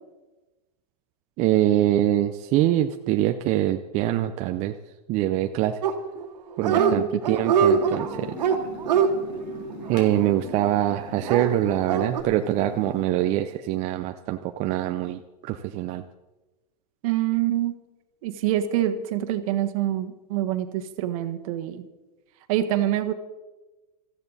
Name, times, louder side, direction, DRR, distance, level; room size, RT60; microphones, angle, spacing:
voice 1, 1.4-4.7 5.1-5.8 6.6-8.4 9.9-16.0, right 13 dB, 35° right, 7 dB, 0.6 m, -24 dB
Dog, 5.8-6.3 6.6-6.9 7.2-10.7 11.2-12.2, right 6 dB, 85° right, 2.0 m, -23 dB
voice 2, 6.7-7.1 17.0-17.8 18.2-21.9 22.5-23.1, right 12 dB, 55° right, 7 dB, 1.5 m, -26 dB
sound 1, 7.5-13.0, left 2 dB, 85° left, 4.1 m, -40 dB
20.0 x 14.5 x 4.1 m, 1.1 s
supercardioid pair, 140°, 21 cm